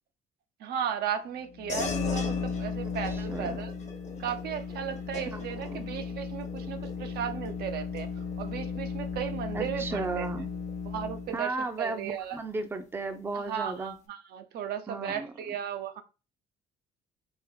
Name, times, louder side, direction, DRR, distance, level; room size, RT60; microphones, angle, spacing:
voice 1, 0.6-3.7 4.2-8.1 8.4-10.3 10.8-12.4 13.4-16.0, right 9 dB, 70° right, 0.6 m, -35 dB
sound 1, 1.5-11.4, left 5 dB, 70° left, 0.6 m, -35 dB
sound 2, 1.7-11.6, left 4 dB, 45° left, 0.9 m, -43 dB
voice 2, 3.1-3.6 5.3-6.0 9.5-10.5 11.3-13.9 14.9-15.3, right 3 dB, 15° right, 0.5 m, -35 dB
3.5 x 2.5 x 3.6 m
cardioid pair, 110°, 17 cm